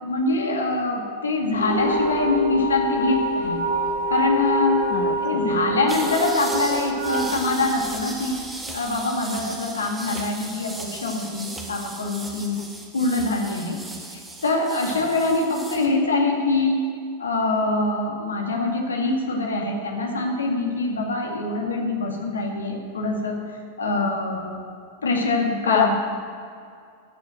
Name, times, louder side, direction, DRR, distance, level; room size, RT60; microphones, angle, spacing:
voice 1, 0.0-3.6 4.1-4.9 5.2-8.4 8.7-12.6 12.9-13.8 14.4-16.8 17.2-23.4 23.8-24.5 25.0-25.9, left 2 dB, 70° left, 1 dB, 2.1 m, -24 dB
sound 1, 1.5-8.4, equal, 85° right, 3.5 m, -26 dB
voice 2, 4.9-5.4 23.9-24.2 25.7-25.9, left 9 dB, 45° left, 6 dB, 0.6 m, -25 dB
sound 2, 5.9-15.9, right 2 dB, 10° right, 1.7 m, -37 dB
13.5 x 6.6 x 7.8 m, 2.4 s
figure-of-eight pair, 90°, 0 cm